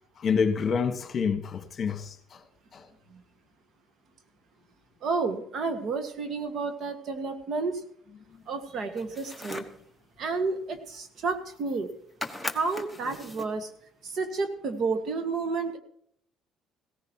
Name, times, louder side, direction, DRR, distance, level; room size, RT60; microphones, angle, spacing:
voice 1, 0.2-2.1 2.7-2.8, left 6 dB, 40° left, 1.5 m, -27 dB
voice 2, 5.0-7.8 8.5-9.6 10.2-11.9 12.4-13.7 14.0-15.8, right 4 dB, 55° right, 1.7 m, -31 dB
sound 1, 9.0-9.8 11.3-11.4 11.6-11.9 12.2-13.6, left 1 dB, ahead, 1.3 m, -38 dB
17.0 x 14.5 x 3.0 m
cardioid pair, 105°, 0 cm